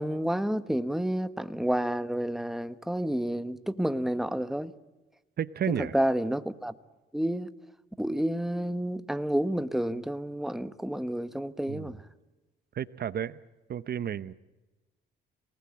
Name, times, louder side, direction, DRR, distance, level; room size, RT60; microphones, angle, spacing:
voice 1, 0.0-4.7 5.7-6.7 7.1-7.5 8.0-12.0, right 1 dB, ahead, 1.2 m, -30 dB
voice 2, 5.4-5.9 11.7-11.9 12.7-13.4 13.7-14.3, right 9 dB, 55° right, 0.8 m, -32 dB
27.5 x 19.5 x 8.7 m
cardioid pair, 90°, 20 cm